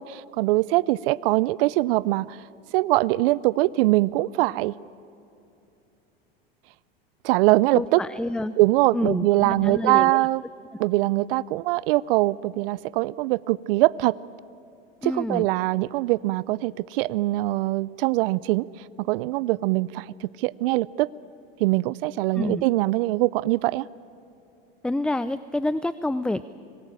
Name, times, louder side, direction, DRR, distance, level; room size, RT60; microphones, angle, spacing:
voice 1, 0.0-2.4 2.7-4.7 7.2-8.0 8.6-10.4 10.8-14.2 15.0-18.7 19.0-21.1 21.6-23.9, right 19 dB, 70° right, 21 dB, 0.6 m, -22 dB
voice 2, 7.7-8.5 8.9-10.3 15.0-15.5 22.3-22.6 24.8-26.4, left 1 dB, 5° left, 15 dB, 0.4 m, -28 dB
25.5 x 18.5 x 8.9 m, 2.7 s
hypercardioid pair, 95°, 30 cm